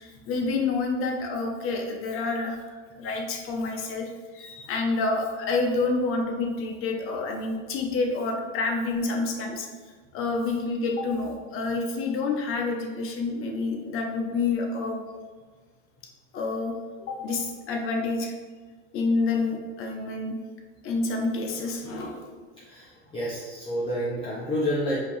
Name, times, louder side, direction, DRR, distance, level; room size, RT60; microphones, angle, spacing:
voice 1, 0.0-9.7 10.1-15.1 16.3-16.7 17.1-18.3 18.9-20.4 20.8-22.3, left 3 dB, 40° left, 2 dB, 0.8 m, -28 dB
voice 2, 22.6-25.0, equal, 15° left, -7 dB, 0.8 m, -29 dB
5.0 x 2.8 x 3.1 m, 1.5 s
supercardioid pair, 115°, 33 cm